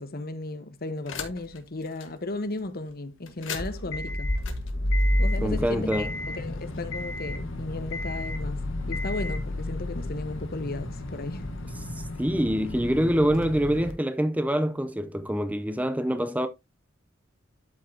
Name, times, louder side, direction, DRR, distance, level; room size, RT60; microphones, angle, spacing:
voice 1, 0.0-4.4 5.2-11.4, left 2 dB, 50° left, 1.1 m, -35 dB
sound 1, 1.1-1.6 2.0-2.1 3.3-13.9, left 1 dB, 70° left, 1.4 m, -30 dB
voice 2, 5.4-6.1 12.2-16.5, equal, 10° right, 0.5 m, -25 dB
12.0 x 5.6 x 2.7 m
head